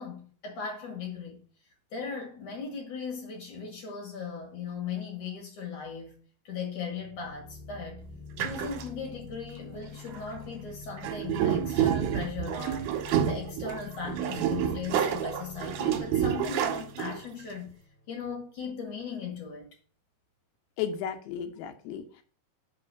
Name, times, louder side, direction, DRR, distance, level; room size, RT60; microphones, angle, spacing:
voice 1, 0.0-1.4 1.9-6.2 6.4-8.0 8.4-17.7 18.1-19.7, left 5 dB, 50° left, 2.8 m, -38 dB
sound 1, 6.9-18.5, left 4 dB, 20° left, 1.6 m, -47 dB
sound 2, 8.4-8.8 10.1-10.4 11.0-17.4, right 9 dB, 75° right, 1.8 m, -29 dB
voice 2, 20.8-22.2, left 8 dB, 80° left, 2.8 m, -34 dB
6.1 x 5.5 x 5.6 m
omnidirectional pair, 5.0 m